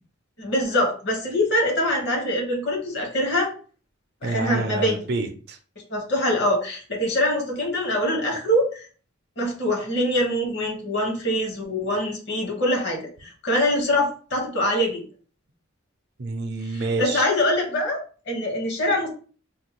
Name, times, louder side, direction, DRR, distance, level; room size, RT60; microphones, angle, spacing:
voice 1, 0.4-3.5 4.2-5.0 5.9-8.9 9.4-15.0 16.7-19.1, left 1 dB, 60° left, 1 dB, 1.2 m, -24 dB
voice 2, 4.2-5.6 16.2-17.3, right 3 dB, 55° right, 7 dB, 0.5 m, -28 dB
3.5 x 2.3 x 3.0 m, 0.39 s
head